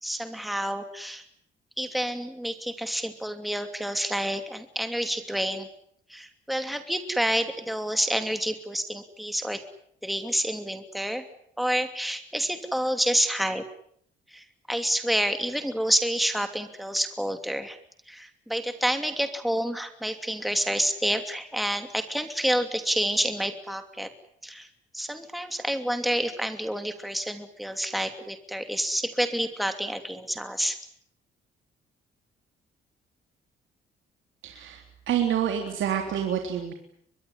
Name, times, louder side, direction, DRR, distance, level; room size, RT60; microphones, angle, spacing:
voice 1, 0.0-1.2 1.8-5.7 6.1-9.6 10.0-11.2 11.6-13.6 14.3-17.8 18.1-24.1 24.4-24.7 24.9-30.8, equal, ahead, 8 dB, 2.8 m, -28 dB
voice 2, 34.4-36.7, right 9 dB, 75° right, 4 dB, 3.7 m, -28 dB
24.0 x 21.5 x 9.8 m, 0.67 s
cardioid pair, 90°, 20 cm